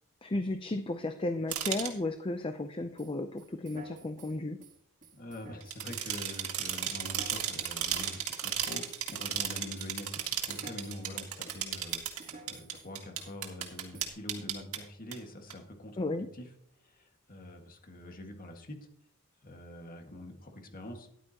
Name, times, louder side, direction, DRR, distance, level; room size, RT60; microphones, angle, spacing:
voice 1, 0.2-4.6 16.0-16.3, left 2 dB, 25° left, 8 dB, 0.5 m, -34 dB
sound 1, 1.5-1.9 5.6-14.8 15.1-15.2 15.5-15.6, right 9 dB, 70° right, 2.0 m, -34 dB
sound 2, 3.0-9.5 9.8-11.2 11.5-12.9 13.2-13.3 13.6-14.1, right 3 dB, 35° right, 1.7 m, -52 dB
voice 2, 5.1-16.5 16.8-18.8 19.4-21.2, left 1 dB, 40° left, 3 dB, 1.9 m, -45 dB
13.5 x 11.0 x 2.9 m, 0.70 s
head